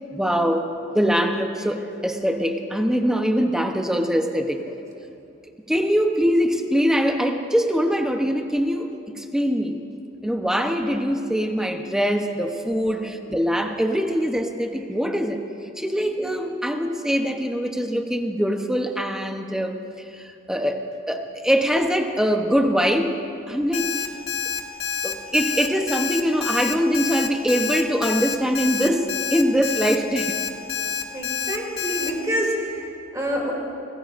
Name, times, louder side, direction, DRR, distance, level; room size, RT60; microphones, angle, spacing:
voice 1, 0.1-4.6 5.7-8.9 9.1-9.8 10.2-15.4 15.8-19.7 20.1-23.1 23.5-24.1 25.0-30.4, equal, 5° right, 4 dB, 0.8 m, -23 dB
Alarm, 23.7-32.1, left 6 dB, 65° left, 1.8 m, -27 dB
voice 2, 31.1-33.6, equal, 20° right, -2 dB, 2.6 m, -27 dB
26.0 x 19.5 x 2.6 m, 2.7 s
head